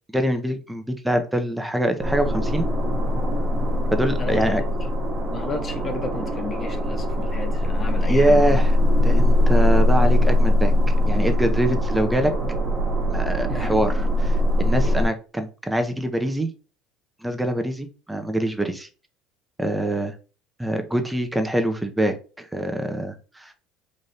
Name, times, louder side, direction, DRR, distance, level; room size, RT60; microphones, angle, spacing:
voice 1, 0.1-2.7 3.9-4.6 8.0-8.7 9.0-10.7 11.1-12.3 13.1-16.5 17.2-18.9 19.6-20.1 20.6-23.5, right 1 dB, 5° right, 0.7 m, -24 dB
sound 1, 2.0-15.1, left 1 dB, 35° right, 1.3 m, -21 dB
voice 2, 4.2-4.7 5.3-8.6 13.5-13.8, left 4 dB, 30° left, 0.5 m, -33 dB
4.0 x 2.6 x 3.3 m
supercardioid pair, 95°, 0 cm